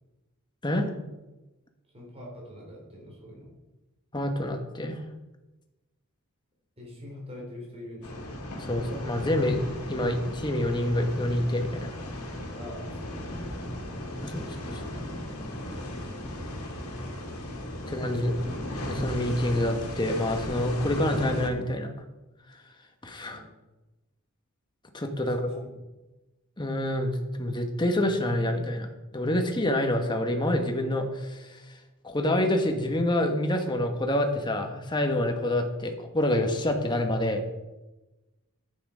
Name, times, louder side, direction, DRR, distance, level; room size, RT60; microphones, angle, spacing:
voice 1, 1.9-3.5 6.8-8.3 12.6-13.4 17.8-18.3 23.2-23.4 25.2-25.7, left 1 dB, 25° right, -3 dB, 3.7 m, -44 dB
voice 2, 4.1-5.0 8.6-9.6 9.9-11.9 14.2-15.0 17.9-18.4 18.8-21.9 23.0-23.4 24.9-25.6 26.6-28.9 29.1-31.6 32.0-37.4, left 1 dB, 20° left, 4 dB, 1.2 m, -27 dB
sound 1, 8.0-21.5, left 1 dB, 85° left, 2.2 m, -36 dB
10.0 x 8.8 x 5.0 m, 1.1 s
head